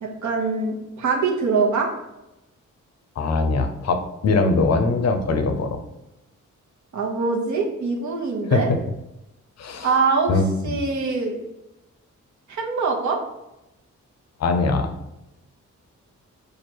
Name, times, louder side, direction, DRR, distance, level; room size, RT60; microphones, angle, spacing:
voice 1, 0.0-1.9 6.9-8.7 9.8-11.4 12.5-13.2, right 4 dB, 65° right, 0 dB, 0.9 m, -23 dB
voice 2, 3.2-5.8 8.5-8.8 9.6-9.9 10.3-10.8 14.4-14.9, left 3 dB, 55° left, 7 dB, 0.6 m, -22 dB
4.5 x 2.4 x 4.5 m, 0.93 s
wide cardioid pair, 135°, 31 cm